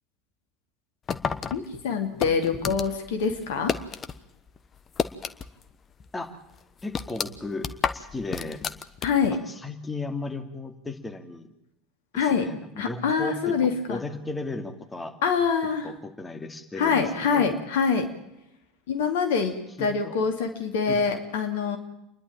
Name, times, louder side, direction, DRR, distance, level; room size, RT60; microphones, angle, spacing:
sound 1, 1.1-4.2 4.5-5.7 6.0-6.1 6.5-9.4, left 6 dB, 30° left, 1.2 m, -31 dB
voice 1, 1.5-3.7 9.0-9.4 12.1-14.0 15.2-15.9 16.8-18.1 18.9-21.8, left 5 dB, 70° left, 6 dB, 2.6 m, -25 dB
voice 2, 6.8-8.6 9.3-11.5 12.1-15.1 15.8-17.0 17.3-17.5 19.8-20.1 20.9-21.0, left 3 dB, 15° left, 5 dB, 2.7 m, -35 dB
29.0 x 11.5 x 8.8 m, 0.84 s
figure-of-eight pair, 70°, 0 cm